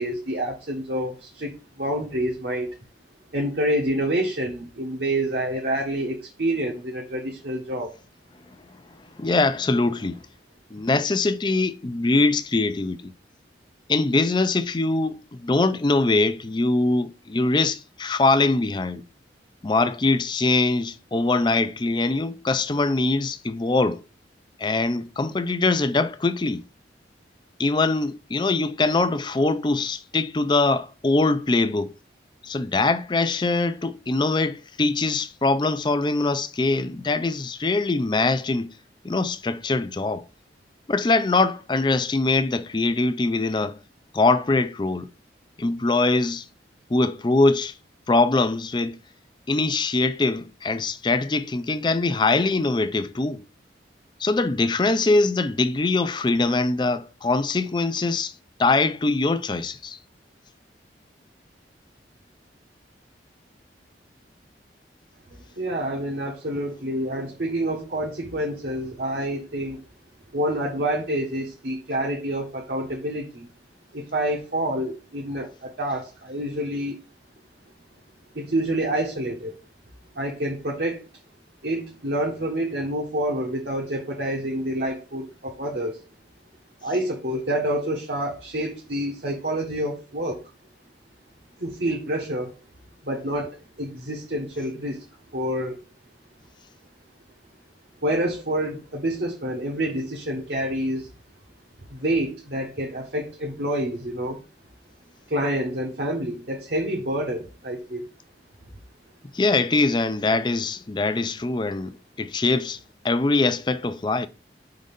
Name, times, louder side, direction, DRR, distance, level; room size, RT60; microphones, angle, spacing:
voice 1, 0.0-1.5 1.8-2.7 3.3-7.9 65.4-69.8 70.3-73.5 73.9-77.0 78.3-79.5 80.1-81.1 81.6-86.0 86.8-90.4 91.6-92.5 93.0-95.0 95.3-95.8 98.0-101.1 101.9-104.4 105.3-108.0, right 1 dB, 65° right, 1.2 m, -27 dB
voice 2, 9.2-10.2 10.7-13.1 13.9-19.0 19.6-24.0 24.6-26.6 27.6-31.9 32.4-38.7 39.0-40.2 40.9-43.8 44.1-45.1 45.6-46.4 46.9-47.7 48.1-49.0 49.5-53.4 54.2-58.3 58.6-60.0 109.3-112.8 113.0-114.3, left 3 dB, 25° left, 0.4 m, -23 dB
5.2 x 3.9 x 5.2 m
head